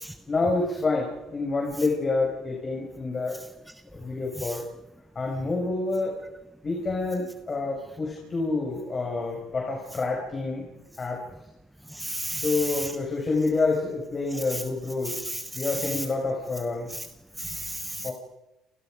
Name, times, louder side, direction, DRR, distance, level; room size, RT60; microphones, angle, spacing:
voice 1, 0.3-3.4 3.9-4.6 5.1-6.2 6.6-10.7 11.0-11.2 12.4-15.2 15.5-16.9 18.0-18.1, left 3 dB, 35° left, 6.4 m, -28 dB
voice 2, 11.9-12.9 14.5-14.6 15.0-16.0 16.9-17.0 17.4-18.1, right 1 dB, 5° right, 1.0 m, -33 dB
29.0 x 27.5 x 5.3 m
supercardioid pair, 85°, 0 cm